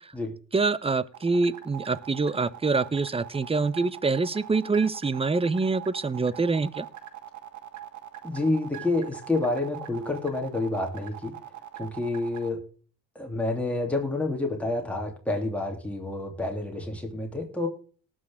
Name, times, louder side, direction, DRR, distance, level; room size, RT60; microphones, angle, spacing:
voice 1, 0.5-6.9, right 4 dB, 20° right, 17 dB, 0.8 m, -25 dB
sound 1, 1.1-12.5, right 12 dB, 70° right, 1.6 m, -42 dB
voice 2, 8.2-11.4 11.8-12.6 13.1-17.7, left 2 dB, 5° left, 1 dB, 3.0 m, -29 dB
19.0 x 6.5 x 3.5 m, 0.42 s
cardioid pair, 90°, 30 cm